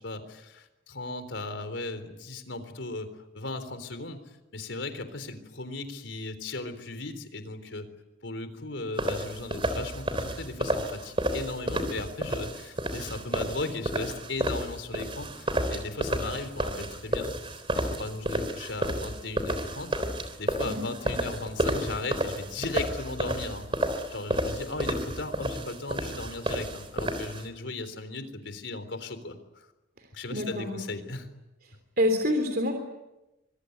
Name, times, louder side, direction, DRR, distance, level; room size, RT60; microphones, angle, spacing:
voice 1, 0.0-3.1 3.3-4.2 4.5-7.9 8.2-19.9 20.4-23.7 24.1-29.7 30.1-31.3, left 2 dB, 80° left, 10 dB, 3.8 m, -37 dB
sound 1, 9.0-27.4, right 1 dB, 30° right, 3.5 m, -31 dB
voice 2, 30.3-30.8 32.0-32.7, left 1 dB, 50° right, 5 dB, 3.3 m, -26 dB
25.5 x 23.0 x 9.5 m, 0.99 s
head